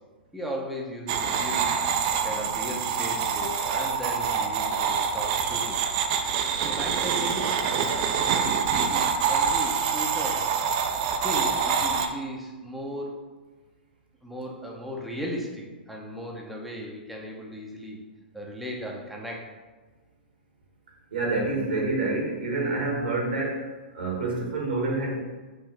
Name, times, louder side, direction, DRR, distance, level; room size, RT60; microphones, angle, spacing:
voice 1, 0.3-1.8 2.2-5.8 6.6-10.5 11.2-13.1 14.2-18.0 18.3-19.5, equal, ahead, -3 dB, 0.7 m, -36 dB
sound 1, 1.1-12.1, right 6 dB, 45° right, 0.4 m, -26 dB
voice 2, 21.1-23.6 23.9-25.1, right 2 dB, 80° right, -1 dB, 1.2 m, -27 dB
5.4 x 2.7 x 3.2 m, 1.3 s
hypercardioid pair, 110°, 5 cm